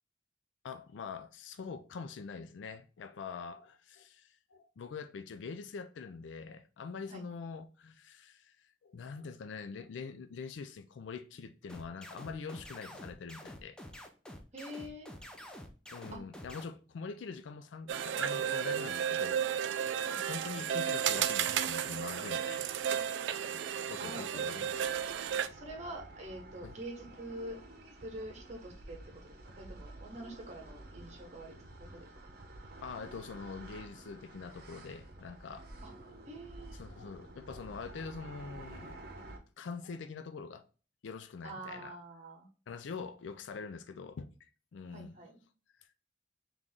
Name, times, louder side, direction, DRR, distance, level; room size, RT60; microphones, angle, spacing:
voice 1, 0.6-13.8 15.9-19.7 20.0-22.7 23.9-25.1 26.6-26.7 32.8-35.7 36.6-38.9 39.6-40.7 41.0-42.0 42.7-45.1 45.8-45.9, left 5 dB, 75° left, 0.4 m, -44 dB
sound 1, 11.7-16.7, equal, 5° left, 0.5 m, -48 dB
voice 2, 14.5-15.1 16.1-16.2 20.0-20.2 24.0-24.2 25.5-27.6 28.0-32.1 35.8-35.9 36.3-36.8 41.4-42.5 44.9-45.3, right 1 dB, 40° right, 1.1 m, -45 dB
sound 2, 17.9-25.5, right 9 dB, 75° right, 0.4 m, -33 dB
sound 3, 24.5-39.4, right 2 dB, 55° right, 0.9 m, -51 dB
3.8 x 3.1 x 3.5 m
head